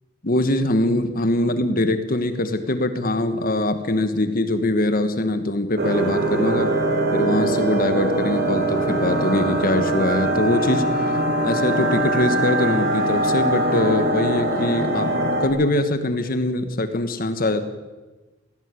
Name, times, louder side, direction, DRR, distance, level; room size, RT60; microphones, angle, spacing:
voice 1, 0.2-6.7 7.1-17.6, left 1 dB, 45° left, 9 dB, 1.4 m, -23 dB
sound 1, 5.8-15.5, right 1 dB, 55° right, 3.5 m, -22 dB
18.0 x 16.5 x 9.7 m, 1.2 s
head